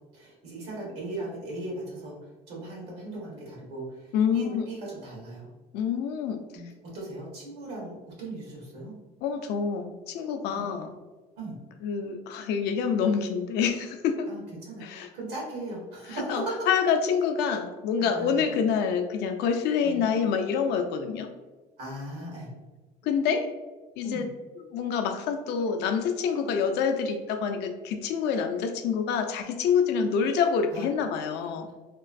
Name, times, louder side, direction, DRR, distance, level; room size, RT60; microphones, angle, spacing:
voice 1, 0.1-2.2 2.5-5.5 6.5-9.0 10.5-10.6 11.4-11.5 14.3-16.7 18.0-18.5 19.8-20.0 21.8-22.5 24.0-24.3 30.7-30.8 31.3-31.5, right 2 dB, 85° right, -3 dB, 1.3 m, -38 dB
voice 2, 4.1-4.6 5.7-6.4 9.2-10.9 11.8-14.3 14.8-15.1 16.1-21.3 23.0-23.4 24.0-24.3 24.7-31.7, left 6 dB, 80° left, 7 dB, 0.4 m, -27 dB
3.0 x 2.4 x 2.5 m, 1.2 s
cardioid pair, 110°, 17 cm